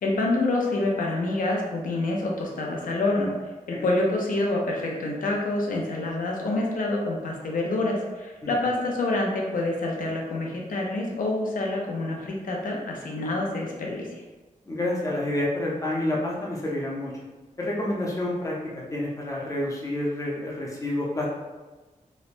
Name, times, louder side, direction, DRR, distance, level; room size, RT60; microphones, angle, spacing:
voice 1, 0.0-3.3 3.7-14.2, left 2 dB, 90° left, -1 dB, 0.5 m, -27 dB
voice 2, 14.7-17.1 17.6-21.3, left 1 dB, 25° left, -4 dB, 0.5 m, -29 dB
3.1 x 2.0 x 2.5 m, 1.2 s
wide cardioid pair, 175°, 14 cm